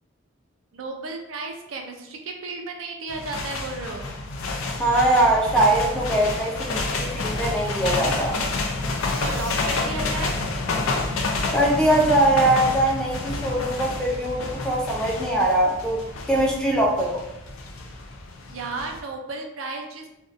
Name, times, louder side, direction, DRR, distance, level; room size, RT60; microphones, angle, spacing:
voice 1, 0.7-4.1 9.2-10.3 18.5-20.1, right 3 dB, 80° right, 3 dB, 0.4 m, -33 dB
sound 1, 3.1-19.0, left 3 dB, 85° left, 0.4 m, -29 dB
voice 2, 4.8-8.4 11.5-17.2, right 1 dB, 5° left, -3 dB, 0.4 m, -22 dB
2.6 x 2.2 x 2.4 m, 0.89 s
head